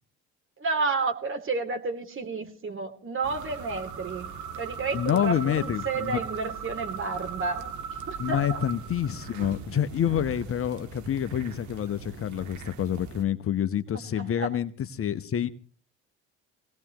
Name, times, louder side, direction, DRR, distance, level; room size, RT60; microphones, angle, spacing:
voice 1, 0.6-4.3 4.6-8.6 13.9-14.5, right 4 dB, 35° right, 2.9 m, -31 dB
sound 1, 3.2-13.2, right 7 dB, 55° right, 1.7 m, -39 dB
voice 2, 4.9-6.2 8.2-14.7 15.0-15.5, left 10 dB, 40° left, 1.0 m, -27 dB
24.0 x 18.0 x 3.0 m
hypercardioid pair, 60°, 34 cm